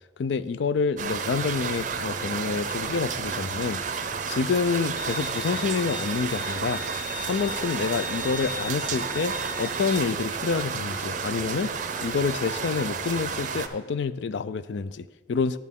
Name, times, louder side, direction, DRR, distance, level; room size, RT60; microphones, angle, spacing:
voice 1, 0.2-11.8 12.0-15.6, left 5 dB, 75° left, 15 dB, 0.4 m, -28 dB
sound 1, 1.0-13.7, right 5 dB, 40° right, 0.5 m, -31 dB
Bowed string instrument, 5.0-10.0, left 2 dB, 10° right, 0.8 m, -39 dB
10.5 x 8.4 x 3.6 m, 1.2 s
head